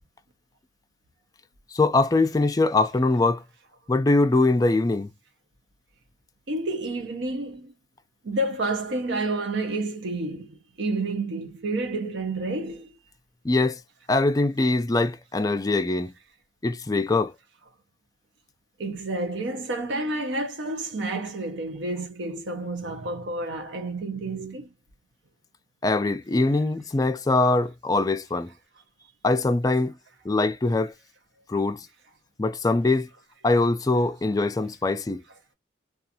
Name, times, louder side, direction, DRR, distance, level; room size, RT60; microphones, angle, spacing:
voice 1, 1.7-3.4 3.9-5.1 13.4-13.8 14.1-16.1 16.6-17.3 25.8-28.5 29.2-29.9 30.2-30.9 31.5-31.9 32.4-33.1 33.4-35.2, left 2 dB, 20° left, 0.3 m, -22 dB
voice 2, 6.5-7.7 8.2-13.0 18.8-24.7 29.0-29.1, right 2 dB, 85° right, 0.6 m, -30 dB
2.5 x 2.4 x 2.7 m
head